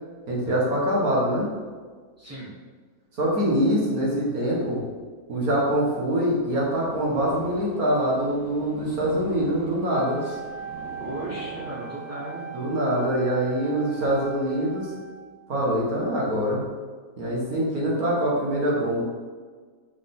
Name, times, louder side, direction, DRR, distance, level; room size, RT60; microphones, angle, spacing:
voice 1, 0.3-1.5 3.2-4.8 5.3-10.2 12.5-14.9 15.5-16.6 17.2-19.0, equal, 55° right, -4 dB, 2.2 m, -24 dB
voice 2, 2.2-2.5 10.2-10.4 11.0-12.5 17.8-17.9, right 1 dB, 10° right, -6 dB, 1.6 m, -36 dB
Purr, 6.7-12.2, right 2 dB, 75° right, 1.6 m, -42 dB
Wind instrument woodwind instrument, 9.9-15.4, right 7 dB, 55° left, 0.9 m, -39 dB
6.7 x 5.2 x 3.8 m, 1.5 s
omnidirectional pair, 1.8 m